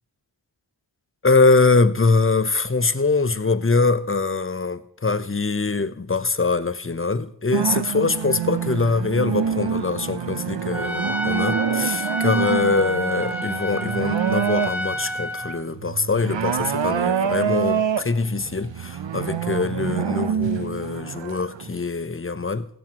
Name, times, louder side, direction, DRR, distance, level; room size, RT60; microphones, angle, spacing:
voice 1, 1.2-22.7, left 3 dB, 30° left, 0.8 m, -23 dB
sound 1, 7.5-15.1 15.5-21.8, right 7 dB, 75° right, 0.7 m, -26 dB
Trumpet, 10.7-15.6, equal, 5° right, 1.3 m, -29 dB
16.5 x 15.5 x 3.0 m
wide cardioid pair, 40°, 46 cm